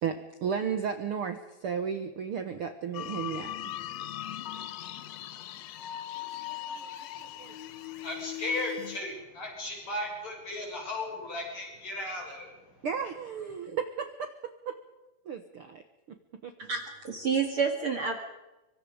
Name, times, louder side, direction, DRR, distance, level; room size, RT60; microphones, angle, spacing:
voice 1, 0.0-3.7 6.3-6.4 6.7-6.9 7.2-7.5 12.8-14.3 14.7-14.8 15.2-15.8 16.1-16.2 16.4-16.5, right 7 dB, 75° right, 8 dB, 1.2 m, -34 dB
sound 1, 2.9-9.0, left 11 dB, 70° left, 1.7 m, -39 dB
voice 2, 8.0-12.6, left 2 dB, 45° left, 0 dB, 8.1 m, -36 dB
voice 3, 16.6-18.2, right 5 dB, 45° right, 4 dB, 2.4 m, -29 dB
25.0 x 24.5 x 5.1 m, 1.0 s
omnidirectional pair, 4.3 m